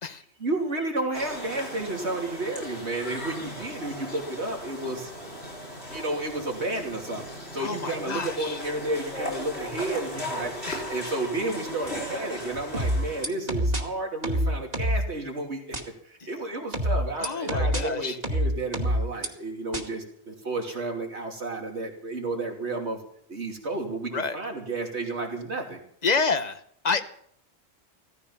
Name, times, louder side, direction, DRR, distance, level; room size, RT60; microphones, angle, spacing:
voice 1, 0.4-5.1 5.9-23.0 23.3-25.8, right 2 dB, 80° right, 1 dB, 3.2 m, -32 dB
sound 1, 1.1-13.3, left 1 dB, 70° left, 6.1 m, -37 dB
voice 2, 7.6-8.6 10.7-10.9 17.2-18.2 24.1-24.4 26.0-27.1, left 4 dB, 40° left, 10 dB, 1.1 m, -28 dB
sound 2, 12.7-13.8 14.2-15.0 15.7-15.8 16.7-17.8 18.2-19.3 19.7-19.8, equal, 35° right, 2.3 m, -25 dB
16.5 x 14.5 x 5.7 m, 0.66 s
omnidirectional pair, 1.1 m